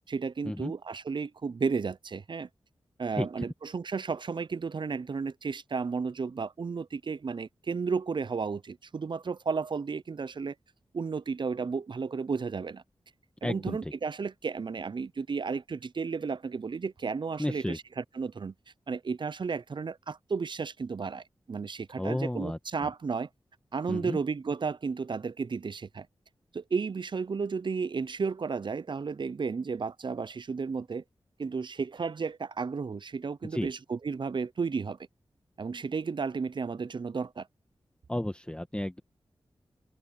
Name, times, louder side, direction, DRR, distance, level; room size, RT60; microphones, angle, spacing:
voice 1, 0.1-2.5 3.0-10.5 10.9-12.8 13.4-18.5 18.9-23.3 23.7-26.1 26.5-31.0 31.4-35.0 35.6-37.5, right 5 dB, 50° right, 0.5 m, -33 dB
voice 2, 13.4-13.9 17.4-17.8 22.0-22.9 23.9-24.2 33.5-33.7 38.1-39.0, left 1 dB, 10° left, 1.4 m, -32 dB
cardioid pair, 45°, 10 cm